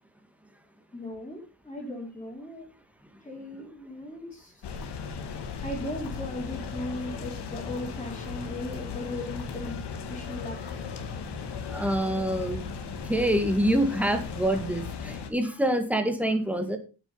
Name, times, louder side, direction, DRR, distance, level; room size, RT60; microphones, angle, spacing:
voice 1, 0.9-2.7 3.2-4.6 5.6-9.8 10.1-10.6, left 1 dB, 10° left, -4 dB, 3.2 m, -37 dB
sound 1, 4.6-15.3, left 5 dB, 65° left, 2.0 m, -37 dB
voice 2, 11.7-12.6 13.0-16.8, right 1 dB, 5° right, 6 dB, 1.8 m, -26 dB
8.9 x 8.5 x 5.4 m, 0.34 s
wide cardioid pair, 155°, 44 cm